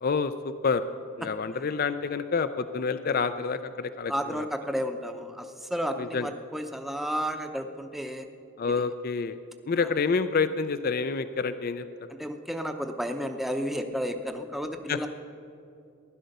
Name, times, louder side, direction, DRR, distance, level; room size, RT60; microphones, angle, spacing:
voice 1, 0.0-0.8 1.2-4.5 6.0-6.3 8.6-9.4 9.7-12.1 14.9-15.1, left 5 dB, 45° left, 11 dB, 0.4 m, -28 dB
voice 2, 4.1-8.3 8.7-8.8 9.8-9.9 12.2-15.1, equal, ahead, 5 dB, 0.7 m, -32 dB
15.5 x 11.5 x 6.6 m, 2.5 s
head